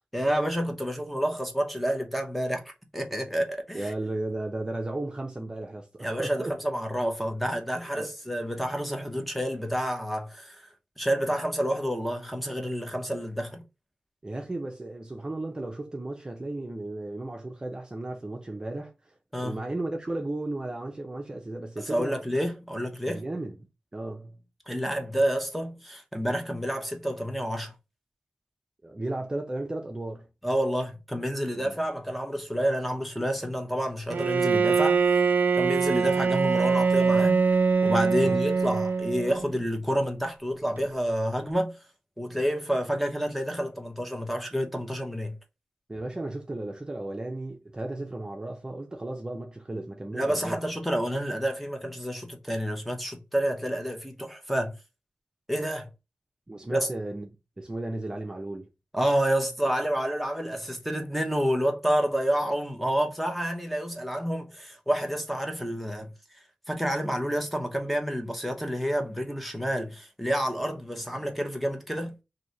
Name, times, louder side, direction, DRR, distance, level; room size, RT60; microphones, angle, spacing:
voice 1, 0.1-3.9 6.0-13.6 19.3-19.6 21.8-23.2 24.7-27.7 30.4-35.0 35.6-37.4 37.8-41.8 42.2-45.4 50.1-54.8 55.5-55.9 56.7-56.9 58.9-66.1 66.7-72.2, equal, ahead, 0.9 m, -29 dB
voice 2, 3.7-6.6 8.0-8.1 14.2-22.2 23.1-23.6 23.9-24.4 28.8-30.3 31.5-31.8 38.2-38.4 45.9-50.6 56.5-57.3 57.6-58.7, right 2 dB, 30° right, 0.6 m, -35 dB
Bowed string instrument, 34.1-39.5, right 5 dB, 85° right, 0.3 m, -23 dB
3.0 x 2.7 x 3.9 m
wide cardioid pair, 70°, 3 cm